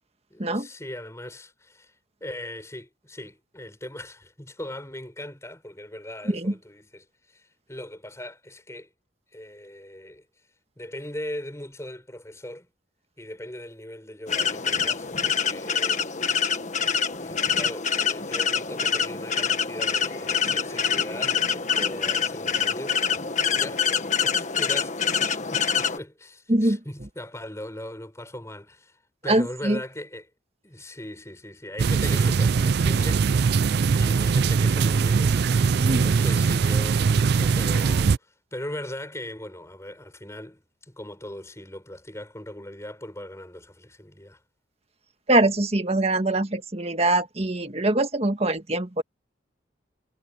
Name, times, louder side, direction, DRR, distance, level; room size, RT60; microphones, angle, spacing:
voice 1, 0.3-1.9 2.2-8.9 9.3-10.2 10.8-12.7 13.2-16.0 17.2-23.9 24.2-25.2 25.5-29.0 29.2-30.3 30.6-33.4 33.9-35.4 35.9-44.4, left 1 dB, 15° left, 5.3 m, -39 dB
sound 1, 14.3-26.0, left 6 dB, 40° left, 1.5 m, -25 dB
voice 2, 26.5-26.8 29.3-29.8 35.8-36.0 45.3-49.0, right 2 dB, 35° right, 1.6 m, -23 dB
sound 2, 31.8-38.2, right 5 dB, 55° right, 0.4 m, -21 dB
head